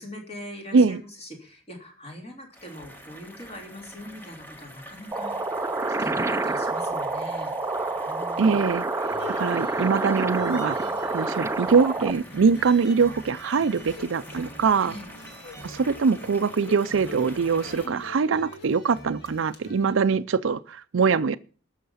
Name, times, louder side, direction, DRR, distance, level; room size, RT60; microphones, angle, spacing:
voice 1, 0.0-5.7 6.0-7.5 8.0-8.5 10.7-10.9 14.8-15.0 17.8-18.0, left 1 dB, 30° left, 3.2 m, -42 dB
sound 1, 2.5-17.9, equal, 10° left, 1.4 m, -46 dB
sound 2, 5.1-12.1, right 2 dB, 15° right, 0.5 m, -28 dB
voice 2, 8.4-8.8 9.3-10.8 11.1-15.0 15.6-21.4, right 5 dB, 70° right, 0.5 m, -23 dB
sound 3, 9.0-20.0, left 1 dB, 55° left, 2.4 m, -45 dB
18.0 x 6.5 x 5.6 m
head